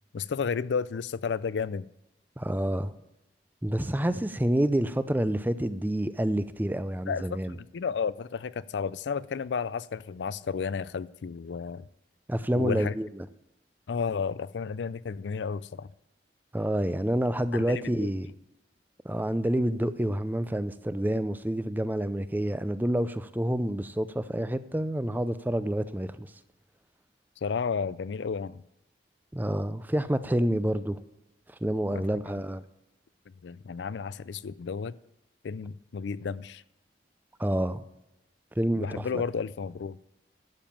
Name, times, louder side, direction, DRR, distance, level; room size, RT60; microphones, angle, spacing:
voice 1, 0.1-1.9 7.1-11.9 12.5-12.9 13.9-15.9 17.5-18.1 27.4-28.6 31.9-32.0 33.4-34.9 35.4-36.6 38.8-40.0, left 5 dB, 80° left, 0.4 m, -32 dB
voice 2, 2.4-2.9 3.6-7.5 12.3-13.3 16.5-18.3 19.0-26.3 29.3-31.0 31.6-32.6 37.4-37.8 38.6-39.2, right 1 dB, 10° right, 0.5 m, -28 dB
12.0 x 7.1 x 7.3 m
head